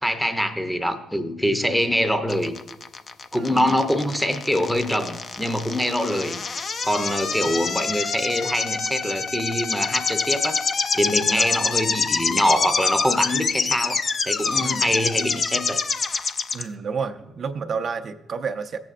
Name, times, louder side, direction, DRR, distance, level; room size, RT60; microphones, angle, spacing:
voice 1, 0.0-2.6 3.3-6.5 6.8-10.6 10.9-14.0 14.3-15.8, equal, ahead, 6 dB, 0.7 m, -24 dB
sound 1, 2.3-16.6, left 5 dB, 45° left, 0.5 m, -26 dB
voice 2, 3.3-3.8 11.4-11.7 14.6-14.9 16.5-18.8, right 5 dB, 55° right, 6 dB, 0.6 m, -31 dB
16.0 x 7.7 x 2.5 m, 0.96 s
cardioid pair, 90°, 0 cm